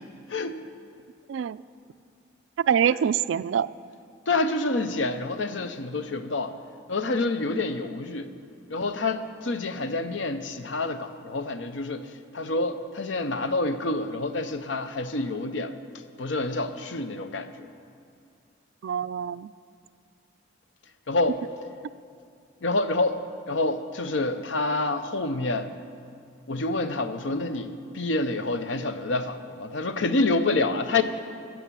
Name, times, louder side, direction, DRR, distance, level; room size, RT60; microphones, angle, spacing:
voice 1, 0.3-0.6 4.3-6.5 6.9-8.3 8.7-12.1 12.3-15.7 16.2-17.5 21.1-21.4 22.6-23.2 23.5-25.7 26.5-31.0, left 2 dB, 75° left, 10 dB, 0.7 m, -27 dB
voice 2, 2.6-3.7 18.8-19.5, right 8 dB, 75° right, 17 dB, 0.3 m, -25 dB
15.0 x 7.1 x 7.4 m, 2.4 s
head